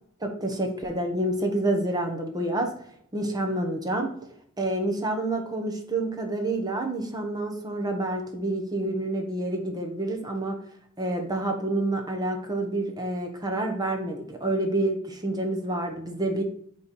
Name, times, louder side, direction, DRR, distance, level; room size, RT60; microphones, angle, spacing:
voice 1, 0.2-2.7 3.1-4.1 4.6-10.6 11.0-16.4, right 1 dB, 20° right, 3 dB, 1.1 m, -28 dB
9.3 x 3.3 x 4.3 m, 0.66 s
head